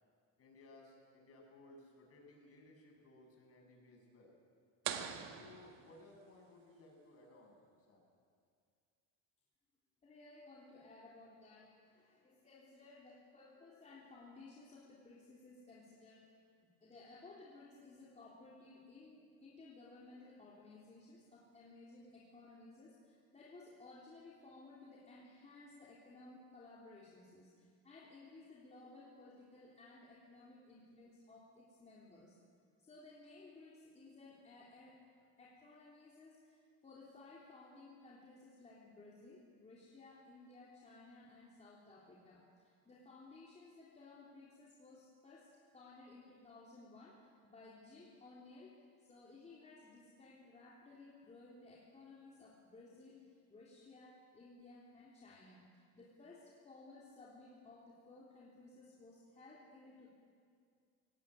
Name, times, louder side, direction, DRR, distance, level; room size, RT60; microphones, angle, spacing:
voice 1, 0.4-4.3 5.3-8.1, left 2 dB, 45° left, 0 dB, 7.8 m, -60 dB
sound 1, 4.8-6.5, right 9 dB, 80° right, 1.9 m, -44 dB
voice 2, 10.0-16.3 16.8-32.4 32.8-35.1 35.4-60.1, left 3 dB, 20° left, -5 dB, 3.3 m, -58 dB
23.0 x 18.0 x 9.7 m, 2.2 s
cardioid pair, 145°, 34 cm